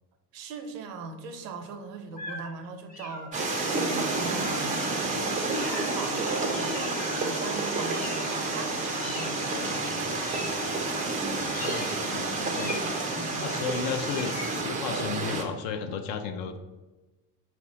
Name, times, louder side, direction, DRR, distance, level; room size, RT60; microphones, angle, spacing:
voice 1, 0.3-10.0 12.5-13.8, right 4 dB, 75° right, 7 dB, 0.6 m, -40 dB
sound 1, 2.1-2.6 2.9-3.6 4.3-4.7 5.6-6.1 6.5-7.3 7.9-8.7 9.0-9.7 10.2-11.1 11.5-12.1 12.5-13.3 14.1-15.0, left 2 dB, 20° left, 0.7 m, -42 dB
sound 2, 3.3-14.6, left 2 dB, 75° left, 1.2 m, -38 dB
sound 3, 3.3-15.4, right 3 dB, 20° right, 0.4 m, -30 dB
voice 2, 11.3-12.2 12.5-12.7 13.4-16.6, left 6 dB, 45° left, 7 dB, 0.5 m, -34 dB
4.2 x 2.2 x 3.7 m, 1.1 s
figure-of-eight pair, 55°, 50 cm